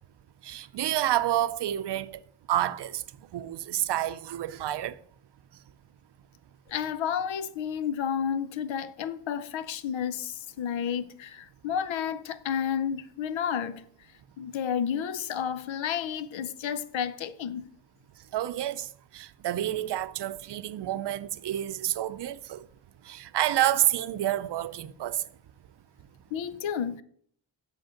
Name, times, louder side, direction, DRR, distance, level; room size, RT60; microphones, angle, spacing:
voice 1, 0.4-2.2 2.5-3.0 3.3-5.0 18.3-22.6 23.0-25.2, right 12 dB, 65° right, 0.6 m, -29 dB
voice 2, 6.7-13.8 14.4-17.7 26.3-27.0, left 8 dB, 85° left, 0.7 m, -31 dB
8.0 x 6.2 x 5.1 m
cardioid pair, 95°, 45 cm